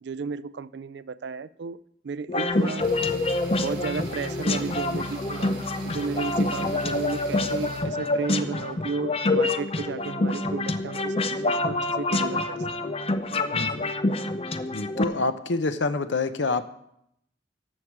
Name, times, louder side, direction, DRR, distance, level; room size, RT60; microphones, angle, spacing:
voice 1, 0.0-2.9 3.6-5.6 5.8-12.7, right 4 dB, 75° right, 16 dB, 0.4 m, -33 dB
sound 1, 2.3-15.0, left 2 dB, 30° left, 0.5 m, -27 dB
sound 2, 2.5-8.7, equal, 5° left, 1.4 m, -48 dB
sound 3, 2.8-7.8, left 1 dB, 30° right, 3.9 m, -39 dB
voice 2, 13.5-13.8 14.7-16.7, left 3 dB, 90° left, 11 dB, 0.7 m, -27 dB
13.5 x 4.8 x 7.3 m, 0.76 s
head